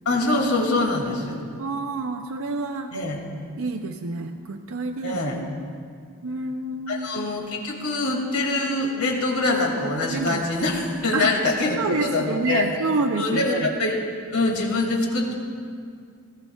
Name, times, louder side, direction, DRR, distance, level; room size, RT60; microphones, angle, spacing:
voice 1, 0.1-1.4 2.9-3.2 5.0-5.4 6.9-12.6 13.2-14.0 14.3-15.3, left 2 dB, 90° left, 0 dB, 2.3 m, -24 dB
voice 2, 1.6-2.9 3.6-5.3 6.2-7.3 10.1-10.4 11.1-11.3 11.7-13.7, right 3 dB, 70° right, 5 dB, 0.5 m, -28 dB
19.0 x 13.5 x 2.3 m, 2.2 s
head